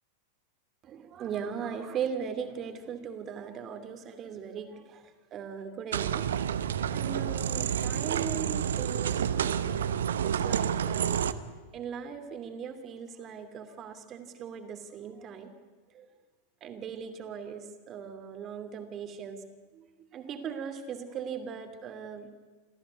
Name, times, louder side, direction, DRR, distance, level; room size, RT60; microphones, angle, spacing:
voice 1, 0.8-6.5 6.9-11.5 11.7-15.6 15.9-16.1 16.6-19.4 19.7-22.3, right 7 dB, 30° right, 7 dB, 2.7 m, -39 dB
sound 1, 5.9-11.3, right 8 dB, 65° right, 0.9 m, -29 dB
27.5 x 15.0 x 9.6 m, 1.4 s
figure-of-eight pair, 90°, 0 cm